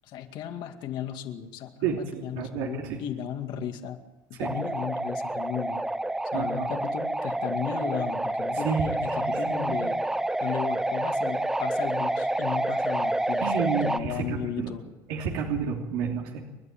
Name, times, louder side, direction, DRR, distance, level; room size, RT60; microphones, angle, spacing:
voice 1, 0.1-4.0 4.3-5.9 6.3-10.0 10.4-13.5 13.8-14.8, left 9 dB, 60° left, 6 dB, 2.2 m, -35 dB
voice 2, 1.8-3.0 4.4-4.6 6.3-6.8 8.5-8.9 9.2-9.8 13.4-14.7 15.1-16.4, right 6 dB, 90° right, 0 dB, 3.1 m, -30 dB
sound 1, 4.4-14.0, right 1 dB, 5° right, 0.8 m, -28 dB
29.0 x 12.0 x 9.1 m, 1.1 s
cardioid pair, 150°, 9 cm